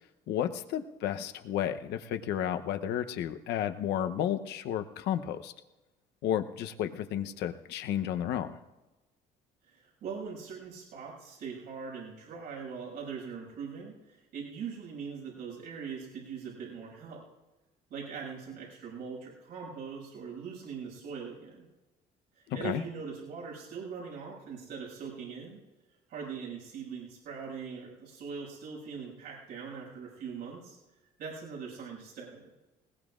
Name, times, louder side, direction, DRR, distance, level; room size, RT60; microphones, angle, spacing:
voice 1, 0.3-5.5 6.2-8.6 22.5-22.8, left 10 dB, 85° left, 8 dB, 0.9 m, -32 dB
voice 2, 9.6-17.2 17.9-21.6 22.3-25.6 26.1-30.8 31.2-32.5, right 6 dB, 80° right, -3 dB, 6.7 m, -41 dB
21.0 x 19.5 x 2.5 m, 1.1 s
cardioid pair, 110°, 17 cm